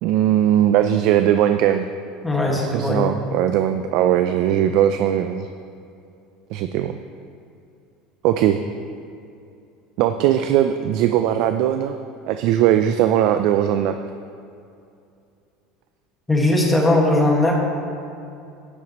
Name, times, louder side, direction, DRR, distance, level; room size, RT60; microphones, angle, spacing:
voice 1, 0.0-1.9 2.5-5.5 6.5-7.0 8.2-8.6 10.0-12.0 12.3-13.9, right 11 dB, 60° right, 8 dB, 0.4 m, -19 dB
voice 2, 2.2-3.1 16.3-17.6, left 1 dB, 5° left, -2 dB, 1.7 m, -19 dB
12.0 x 9.9 x 3.0 m, 2.6 s
supercardioid pair, 145°, 0 cm